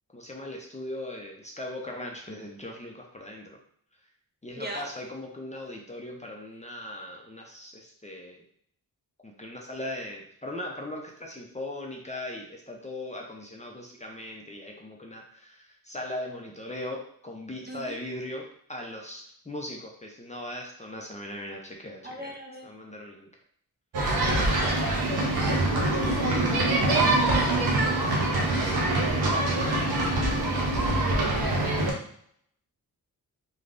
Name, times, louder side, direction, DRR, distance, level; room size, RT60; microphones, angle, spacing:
voice 1, 0.1-3.6 4.4-8.4 9.2-22.3 22.6-23.3, left 1 dB, 20° left, 0 dB, 0.6 m, -39 dB
voice 2, 17.7-18.0 22.0-22.7 24.3-25.1 26.9-27.5, equal, 25° right, 0 dB, 0.6 m, -40 dB
sound 1, 23.9-31.9, right 2 dB, 80° right, 0.8 m, -24 dB
3.4 x 2.3 x 2.5 m, 0.64 s
cardioid pair, 65°, 37 cm